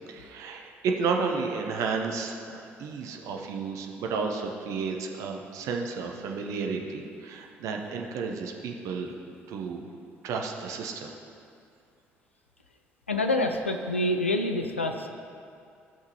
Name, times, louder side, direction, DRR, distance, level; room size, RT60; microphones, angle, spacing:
voice 1, 0.1-9.1 9.5-9.8 10.2-11.1, right 5 dB, 55° right, 2 dB, 0.8 m, -32 dB
voice 2, 13.1-15.1, left 2 dB, 85° left, 5 dB, 0.4 m, -27 dB
15.0 x 5.9 x 3.0 m, 2.5 s
figure-of-eight pair, 50°, 6 cm